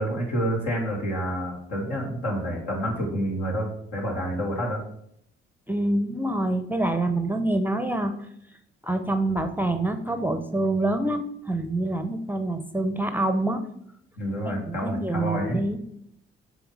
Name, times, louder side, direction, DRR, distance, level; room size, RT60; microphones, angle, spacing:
voice 1, 0.0-4.8 14.2-15.6, equal, 70° left, -2 dB, 1.8 m, -28 dB
voice 2, 5.7-8.1 8.8-13.6 14.7-15.8, right 2 dB, 5° right, 8 dB, 0.6 m, -26 dB
7.0 x 3.6 x 4.8 m, 0.72 s
hypercardioid pair, 45°, 30 cm